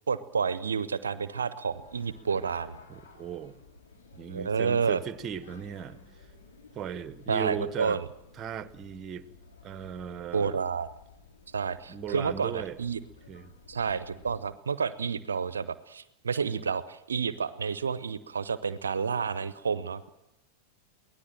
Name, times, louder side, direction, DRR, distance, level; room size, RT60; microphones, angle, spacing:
voice 1, 0.1-2.8 4.3-5.0 7.3-8.0 10.3-10.9 11.5-13.0 13.7-20.1, right 6 dB, 70° right, 16 dB, 0.7 m, -30 dB
sound 1, 1.7-14.4, left 4 dB, 65° left, 4.2 m, -54 dB
voice 2, 2.9-3.6 4.2-6.0 6.7-8.0 8.4-9.3 9.6-10.6 11.9-12.8 13.3-13.5, right 8 dB, 30° right, 16 dB, 1.1 m, -37 dB
23.0 x 17.5 x 7.6 m, 0.93 s
figure-of-eight pair, 90°, 0 cm